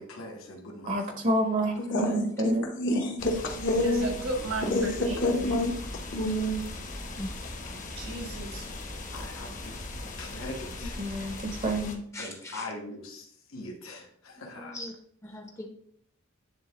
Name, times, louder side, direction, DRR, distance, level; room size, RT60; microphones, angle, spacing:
voice 1, 0.0-1.3 2.0-2.1 7.6-7.8 9.1-9.8 10.2-11.0 12.2-14.8, left 2 dB, 80° left, 1 dB, 1.3 m, -42 dB
voice 2, 0.9-2.7 2.9-3.0 11.0-12.0, right 1 dB, 35° right, 4 dB, 0.7 m, -28 dB
voice 3, 1.9-4.2 4.7-6.6, left 1 dB, 60° left, 1 dB, 1.0 m, -28 dB
sound 1, 3.2-12.0, left 2 dB, 40° left, 0.9 m, -39 dB
voice 4, 3.8-5.2 8.0-8.6, right 2 dB, 75° right, 3 dB, 1.3 m, -34 dB
voice 5, 12.1-12.7 14.4-14.9 15.2-15.7, left 1 dB, 15° left, 4 dB, 0.6 m, -39 dB
10.0 x 3.4 x 2.9 m, 0.64 s
head